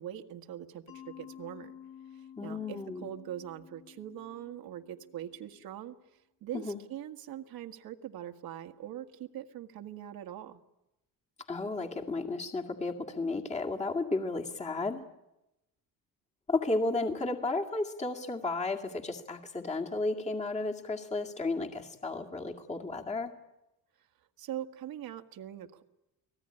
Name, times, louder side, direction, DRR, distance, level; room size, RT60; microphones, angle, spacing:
voice 1, 0.0-1.7 2.1-10.6 24.0-24.1 24.4-25.8, right 11 dB, 70° right, 5 dB, 1.8 m, -42 dB
Mallet percussion, 0.9-5.6, left 9 dB, 85° left, 5.6 m, -52 dB
voice 2, 2.4-3.1 6.5-6.8 11.5-15.0 16.5-23.3, left 3 dB, 20° left, 1 dB, 2.2 m, -33 dB
29.5 x 19.0 x 9.9 m, 0.93 s
cardioid pair, 120°, 36 cm